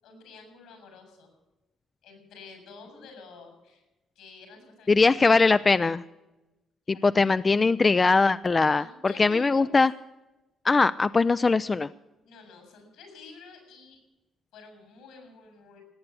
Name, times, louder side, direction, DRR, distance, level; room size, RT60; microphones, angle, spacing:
voice 1, 0.0-1.3 2.0-3.8 4.2-5.7 6.9-7.3 8.8-9.7 12.2-14.0 14.5-15.8, left 4 dB, 85° left, 6 dB, 7.1 m, -49 dB
voice 2, 4.9-6.0 7.0-9.9 10.6-11.9, left 4 dB, 30° left, 13 dB, 0.4 m, -21 dB
18.5 x 8.7 x 8.2 m, 1.0 s
supercardioid pair, 65°, 0 cm